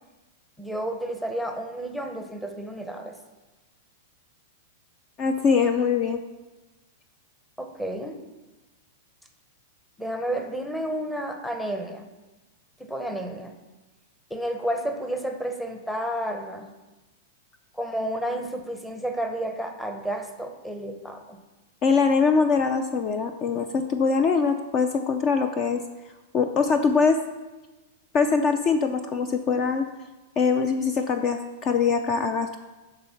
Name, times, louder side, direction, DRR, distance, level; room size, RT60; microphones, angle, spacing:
voice 1, 0.6-3.2 7.6-8.2 10.0-12.1 12.8-13.5 14.3-16.7 17.7-21.4, right 1 dB, 5° left, 5 dB, 0.7 m, -31 dB
voice 2, 5.2-6.2 21.8-25.8 26.3-27.2 28.1-29.9 30.4-32.6, left 5 dB, 30° left, 8 dB, 0.4 m, -23 dB
11.5 x 3.9 x 5.7 m, 1.1 s
supercardioid pair, 150°, 0 cm